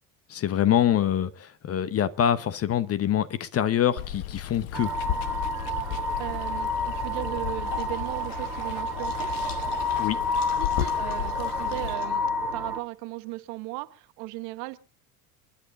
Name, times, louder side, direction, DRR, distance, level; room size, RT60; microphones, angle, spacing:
voice 1, 0.3-4.9 10.0-10.2, left 10 dB, 30° left, 1.0 m, -25 dB
Water, 4.0-11.9, left 12 dB, 55° left, 1.2 m, -35 dB
sound 1, 4.7-12.8, left 2 dB, 5° right, 1.7 m, -30 dB
voice 2, 5.7-9.3 10.6-14.8, right 20 dB, 55° right, 1.3 m, -37 dB
sound 2, 7.7-12.8, left 3 dB, 85° left, 2.4 m, -40 dB
30.0 x 10.0 x 3.9 m
hypercardioid pair, 75°, 46 cm